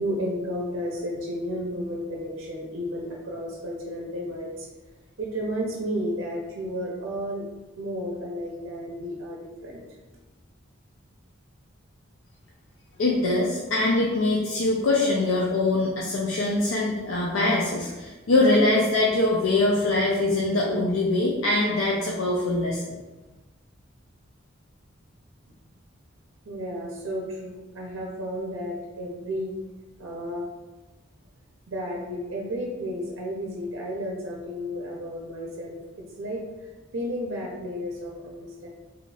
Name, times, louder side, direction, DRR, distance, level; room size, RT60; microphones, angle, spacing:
voice 1, 0.0-4.7 5.2-7.5 7.8-9.8 26.4-29.6 30.0-30.5 31.7-38.7, equal, 75° right, -2 dB, 0.5 m, -32 dB
voice 2, 13.0-23.0, left 2 dB, 85° left, -3 dB, 0.5 m, -23 dB
3.0 x 2.3 x 4.0 m, 1.1 s
head